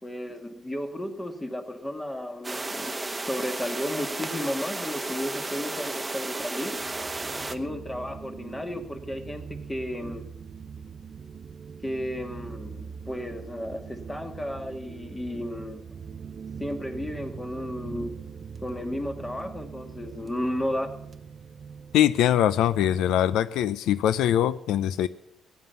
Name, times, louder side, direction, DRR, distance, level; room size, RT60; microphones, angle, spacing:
voice 1, 0.0-2.9 3.3-6.8 7.5-10.3 11.8-15.8 16.6-18.1 18.6-20.9, left 1 dB, 15° left, 6 dB, 1.9 m, -33 dB
sound 1, 2.4-7.6, right 2 dB, 15° right, 1.1 m, -33 dB
sound 2, 6.7-23.0, right 6 dB, 45° right, 0.5 m, -42 dB
voice 2, 21.9-25.1, left 11 dB, 85° left, 16 dB, 0.4 m, -22 dB
15.0 x 9.6 x 6.9 m, 0.76 s
cardioid pair, 90°, 0 cm